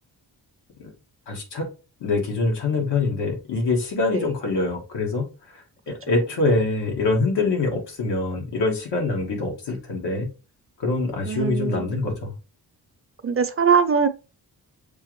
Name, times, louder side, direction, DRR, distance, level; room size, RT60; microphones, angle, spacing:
voice 1, 1.3-1.7 2.0-10.3 10.8-12.3, left 3 dB, 85° left, 1.4 m, -24 dB
voice 2, 11.2-11.9 13.2-14.1, right 6 dB, 35° right, 0.7 m, -21 dB
6.8 x 2.5 x 3.1 m
cardioid pair, 60°, 41 cm